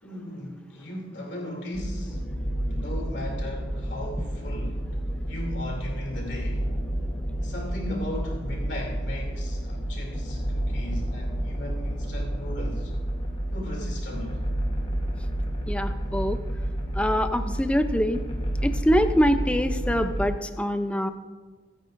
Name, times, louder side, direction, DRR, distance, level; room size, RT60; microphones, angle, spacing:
voice 1, 0.0-2.2 2.6-4.8 5.2-6.7 7.4-12.9 13.5-14.4, left 1 dB, 70° left, -1 dB, 2.8 m, -37 dB
sound 1, 1.7-20.3, right 1 dB, 30° left, 1.1 m, -30 dB
voice 2, 15.7-16.4 17.0-18.2 18.6-21.1, equal, 5° left, 8 dB, 0.5 m, -24 dB
23.5 x 9.0 x 2.6 m, 1.4 s
head